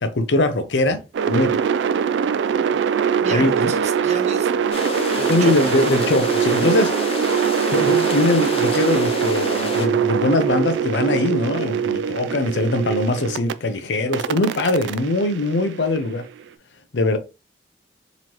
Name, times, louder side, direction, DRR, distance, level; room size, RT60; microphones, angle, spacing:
voice 1, 0.0-1.6 3.3-3.7 5.3-6.9 7.7-16.2 16.9-17.2, left 2 dB, 85° left, 0.6 m, -21 dB
sound 1, 1.1-13.5 14.1-16.3, right 7 dB, 85° right, 0.3 m, -22 dB
voice 2, 3.2-4.5 5.2-5.5, right 4 dB, 40° right, 0.6 m, -31 dB
sound 2, 4.7-9.9, left 2 dB, 30° left, 0.5 m, -28 dB
3.9 x 3.0 x 3.0 m
head